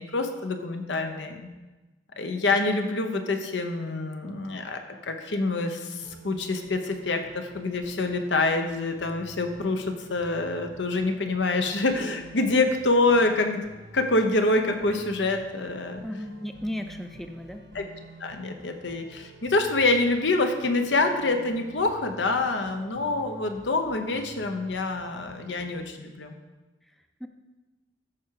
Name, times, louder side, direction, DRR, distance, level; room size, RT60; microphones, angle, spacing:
voice 1, 0.0-1.5 2.2-13.6 13.9-16.0 17.7-17.8 18.2-26.4, left 2 dB, 85° left, 5 dB, 1.0 m, -26 dB
sound 1, 6.0-25.8, right 2 dB, 85° right, 1.2 m, -49 dB
voice 2, 16.0-17.7 26.9-27.3, left 1 dB, ahead, 6 dB, 0.4 m, -36 dB
13.5 x 4.9 x 4.8 m, 1.1 s
head